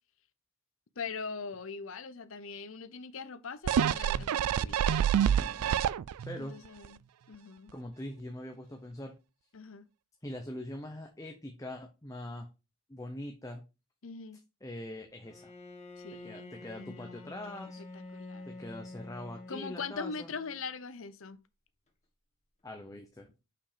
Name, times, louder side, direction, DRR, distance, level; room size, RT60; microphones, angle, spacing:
voice 1, 1.0-4.9 6.4-7.0 7.3-7.7 9.5-9.9 14.0-14.4 16.0-17.7 17.9-18.5 19.5-21.4, left 5 dB, 65° left, 0.7 m, -42 dB
sound 1, 3.7-6.4 6.8-6.9, right 9 dB, 90° right, 0.3 m, -27 dB
voice 2, 5.2-5.8 6.2-6.6 7.7-9.2 10.2-12.5 12.9-13.6 14.6-15.5 16.2-17.8 18.4-20.3 22.6-23.3, left 1 dB, 15° left, 0.7 m, -43 dB
Bowed string instrument, 15.2-20.6, left 2 dB, 30° left, 1.5 m, -48 dB
5.8 x 5.0 x 5.0 m
head